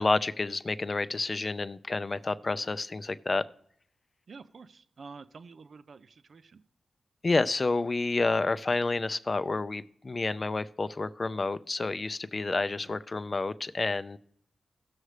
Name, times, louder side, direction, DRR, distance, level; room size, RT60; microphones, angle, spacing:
voice 1, 0.0-3.4 7.2-14.2, left 3 dB, 45° left, 15 dB, 0.5 m, -29 dB
voice 2, 4.3-6.6 12.8-13.0, right 4 dB, 65° right, 12 dB, 0.5 m, -49 dB
16.0 x 6.5 x 3.2 m, 0.70 s
supercardioid pair, 40°, 0 cm